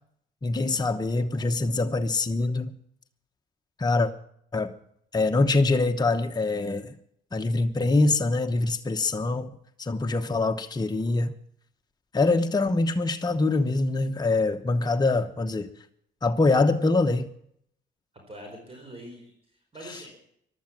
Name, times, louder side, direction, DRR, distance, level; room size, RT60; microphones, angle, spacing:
voice 1, 0.4-2.7 3.8-4.1 4.5-4.7 5.1-7.0 7.3-9.5 9.8-11.3 12.1-15.7 16.2-17.3 19.9-20.0, left 3 dB, 20° left, 0.9 m, -24 dB
voice 2, 18.1-20.2, right 1 dB, 30° right, 4.7 m, -44 dB
15.5 x 11.5 x 7.5 m
cardioid pair, 90°, 19 cm